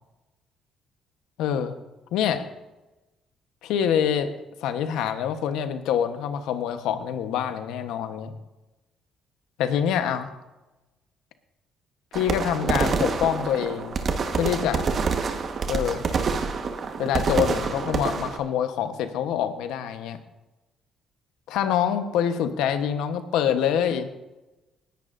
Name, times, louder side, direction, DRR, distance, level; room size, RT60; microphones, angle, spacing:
voice 1, 1.4-1.7 2.1-2.4 3.6-4.3 4.6-8.3 9.6-10.4 12.1-14.0 14.3-14.9 15.7-16.0 17.0-20.2 21.5-24.1, left 9 dB, 80° left, 9 dB, 1.1 m, -25 dB
sound 1, 12.1-18.4, right 5 dB, 50° right, 1.4 m, -27 dB
19.5 x 10.5 x 2.6 m, 1.1 s
supercardioid pair, 70°, 0 cm